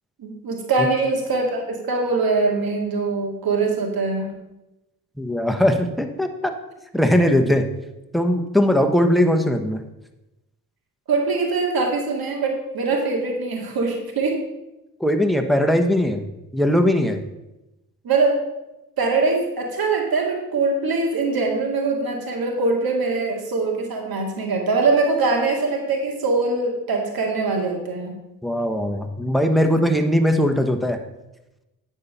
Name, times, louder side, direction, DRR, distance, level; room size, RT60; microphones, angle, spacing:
voice 1, 0.2-4.3 11.1-14.4 18.0-18.4 19.0-28.2, right 3 dB, 65° right, 1 dB, 2.2 m, -22 dB
voice 2, 5.2-6.5 6.9-7.7 8.1-9.8 15.0-16.2 16.5-17.2 28.4-31.0, equal, ahead, 5 dB, 1.2 m, -19 dB
9.5 x 4.4 x 6.7 m, 0.96 s
supercardioid pair, 50°, 38 cm